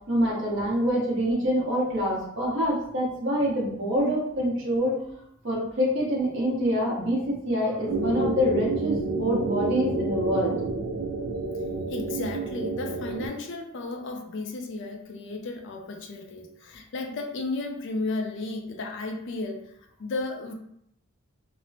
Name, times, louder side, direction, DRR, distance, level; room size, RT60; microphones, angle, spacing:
voice 1, 0.1-5.0 5.4-10.6, equal, 55° right, -5 dB, 1.0 m, -26 dB
sound 1, 7.9-13.3, right 3 dB, 85° right, 0.4 m, -29 dB
voice 2, 11.9-19.7 20.0-20.5, left 2 dB, 55° left, 3 dB, 0.4 m, -34 dB
2.9 x 2.0 x 2.7 m, 0.73 s
head